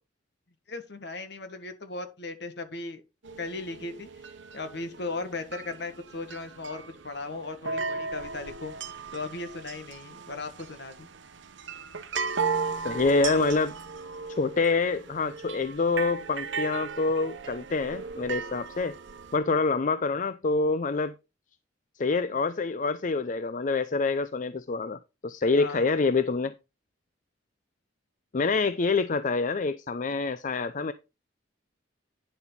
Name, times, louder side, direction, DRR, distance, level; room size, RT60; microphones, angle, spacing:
voice 1, 0.7-3.0 3.4-4.1 4.5-11.1 25.5-25.9, left 3 dB, 60° left, 1.7 m, -37 dB
sound 1, 3.2-19.4, right 5 dB, 70° right, 1.0 m, -36 dB
voice 2, 12.8-13.7 14.3-18.9 19.3-21.1 22.0-26.5 28.3-30.9, left 4 dB, 40° left, 0.5 m, -26 dB
10.0 x 7.1 x 4.0 m
head